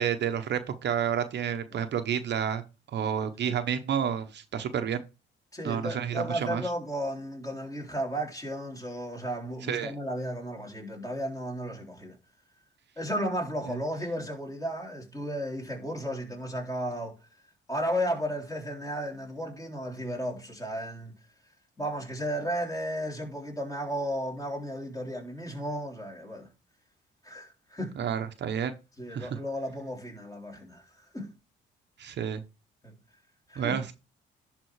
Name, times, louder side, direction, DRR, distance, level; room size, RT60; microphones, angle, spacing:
voice 1, 0.0-2.6 2.9-5.0 5.6-6.6 9.7-9.9 13.7-13.8 28.0-28.7 29.1-29.4 32.0-32.4 33.6-33.9, right 8 dB, 60° right, 0.9 m, -30 dB
voice 2, 5.5-12.2 13.0-17.2 17.7-21.1 21.8-26.5 27.2-28.0 29.0-31.3 32.8-32.9 33.5-33.8, equal, 15° left, 3.5 m, -34 dB
11.0 x 3.7 x 4.7 m
cardioid pair, 90°, 20 cm